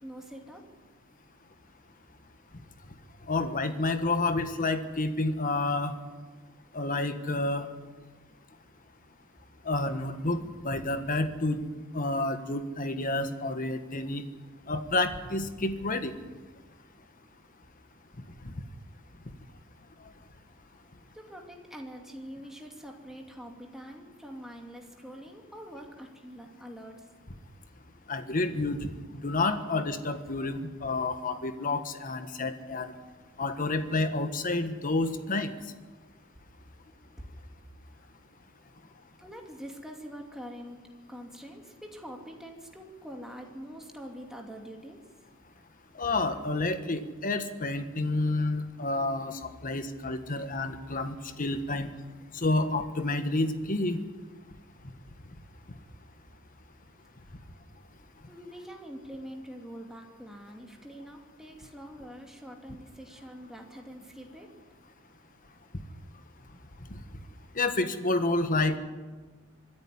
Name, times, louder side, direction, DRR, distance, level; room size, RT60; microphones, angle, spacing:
voice 1, 0.0-0.6 21.1-27.0 37.2-37.3 39.2-45.0 50.9-51.0 58.3-64.5, equal, ahead, 1 dB, 2.6 m, -44 dB
voice 2, 3.2-6.0 6.7-7.7 9.6-11.6 11.9-14.2 14.7-16.1 18.4-18.6 28.1-28.9 29.2-32.9 33.4-35.5 45.9-51.9 52.3-54.0 66.9-67.0 67.5-68.8, left 2 dB, 40° left, 9 dB, 1.5 m, -29 dB
25.0 x 10.5 x 9.8 m, 1.3 s
head